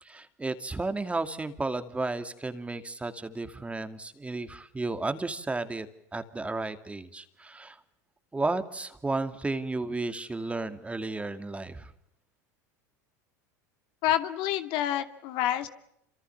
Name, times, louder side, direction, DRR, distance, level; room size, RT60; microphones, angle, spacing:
voice 1, 0.0-7.8 8.3-11.9, right 3 dB, 10° right, 9 dB, 2.4 m, -33 dB
voice 2, 14.0-15.7, left 12 dB, 60° left, 9 dB, 2.4 m, -28 dB
28.0 x 26.0 x 7.1 m, 0.78 s
hypercardioid pair, 95°, 10 cm